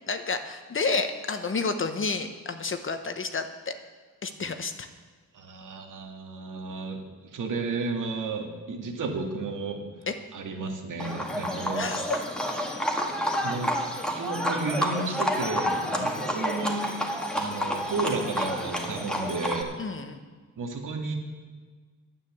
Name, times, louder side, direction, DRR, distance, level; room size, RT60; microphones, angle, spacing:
voice 1, 0.1-3.7 4.2-4.9 10.1-10.2 11.8-12.0 15.9-16.2 19.8-20.2, left 4 dB, 40° left, 8 dB, 1.0 m, -30 dB
voice 2, 5.3-9.8 10.3-12.0 13.4-13.8 14.2-16.9 17.3-19.7 20.6-21.2, right 3 dB, 75° right, 3 dB, 2.0 m, -33 dB
Livestock farm animals working animals, 11.0-19.6, equal, 5° left, 1.8 m, -29 dB
9.7 x 9.2 x 7.7 m, 1.5 s
cardioid pair, 90°, 32 cm